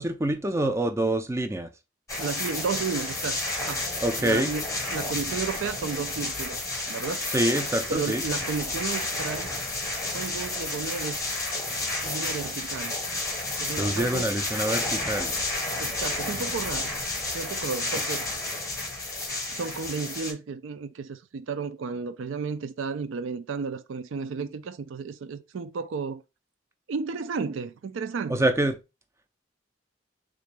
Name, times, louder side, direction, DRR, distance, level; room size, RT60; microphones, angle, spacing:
voice 1, 0.0-1.7 4.0-4.5 7.3-8.2 13.8-15.3 28.3-28.8, right 1 dB, 15° right, 0.4 m, -26 dB
sound 1, 2.1-20.3, left 2 dB, 15° left, 0.9 m, -31 dB
voice 2, 2.2-3.8 4.2-6.6 6.9-7.3 7.9-9.5 10.1-11.2 12.0-12.9 13.6-14.3 15.8-16.9 17.3-18.3 19.5-26.2 26.9-28.5, right 5 dB, 75° right, 0.4 m, -33 dB
3.7 x 2.5 x 3.2 m
head